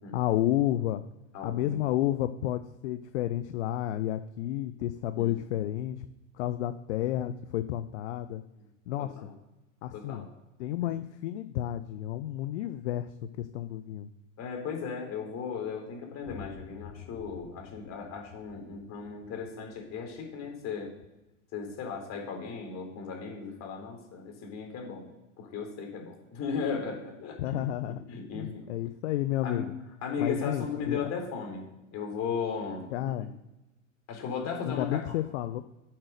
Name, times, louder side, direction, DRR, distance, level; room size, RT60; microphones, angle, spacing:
voice 1, 0.1-1.0 1.4-6.1 6.4-8.4 8.9-9.3 9.8-10.3 10.6-13.1 13.4-14.1 27.4-28.0 28.3-29.7 30.2-31.0 32.9-33.3 34.7-35.6, left 13 dB, 60° left, 11 dB, 0.7 m, -31 dB
voice 2, 1.3-1.8 5.1-5.4 9.0-9.3 9.9-10.3 10.8-10.9 14.4-20.9 21.5-25.1 25.4-28.7 29.4-29.6 30.0-33.3 34.1-35.2, left 6 dB, 40° left, 2 dB, 4.1 m, -36 dB
sound 1, 16.2-21.7, left 6 dB, 10° left, 4.2 m, -51 dB
8.9 x 7.6 x 6.8 m, 0.97 s
hypercardioid pair, 90°, 39 cm